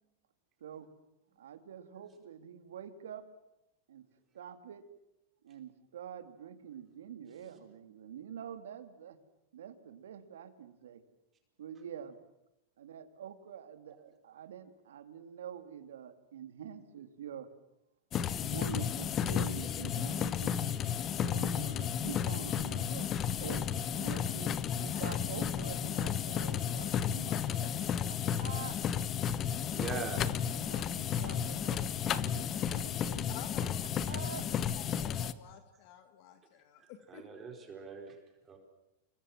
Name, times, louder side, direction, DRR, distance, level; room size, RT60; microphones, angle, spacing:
voice 1, 0.6-0.9 1.4-3.2 3.9-4.0 4.3-4.8 5.4-9.2 9.5-11.0 11.6-12.2 12.8-17.5 18.4-20.8 21.2-23.1 23.4-23.6 23.9-24.5 24.8-27.3 28.1-28.8 30.5-33.3 34.1-34.5, right 9 dB, 90° right, 9 dB, 2.7 m, -46 dB
sound 1, 18.1-35.3, left 8 dB, 30° left, 1.2 m, -33 dB
voice 2, 27.3-28.1 30.8-30.9 33.3-33.8 34.2-34.3 34.8-37.2, left 10 dB, 50° left, 8 dB, 2.1 m, -51 dB
voice 3, 29.7-30.6 35.7-35.8 36.8-38.6, right 5 dB, 25° right, 3 dB, 4.7 m, -43 dB
29.0 x 22.5 x 7.5 m, 0.90 s
supercardioid pair, 135°, 0 cm